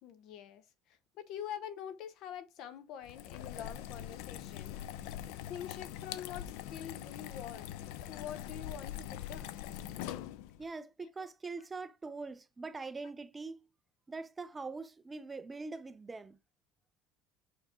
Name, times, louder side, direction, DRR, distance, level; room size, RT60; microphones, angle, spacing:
voice 1, 0.0-4.8 5.5-7.8 8.1-9.6 11.0-11.3, left 9 dB, 55° left, 0.9 m, -46 dB
sound 1, 3.0-10.6, left 11 dB, 75° left, 0.5 m, -43 dB
voice 2, 10.6-13.6 14.1-16.4, right 3 dB, 15° right, 0.4 m, -43 dB
5.8 x 4.6 x 3.6 m
cardioid pair, 140°, 0 cm